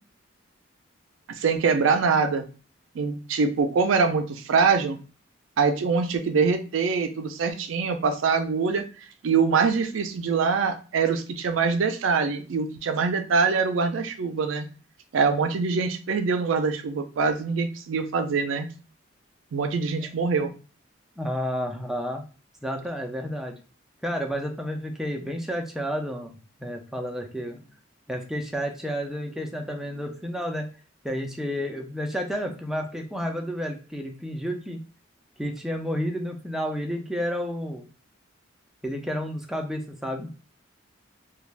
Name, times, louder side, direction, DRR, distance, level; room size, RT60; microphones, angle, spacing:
voice 1, 1.3-2.4 3.0-5.0 5.6-8.8 9.2-14.7 15.1-18.7 19.5-20.5, right 5 dB, 75° right, 8 dB, 0.4 m, -24 dB
voice 2, 21.2-22.2 22.6-23.5 24.0-27.6 28.1-30.7 31.0-34.8 35.4-37.9 38.8-40.3, equal, ahead, 2 dB, 0.3 m, -31 dB
2.4 x 2.2 x 3.2 m, 0.37 s
head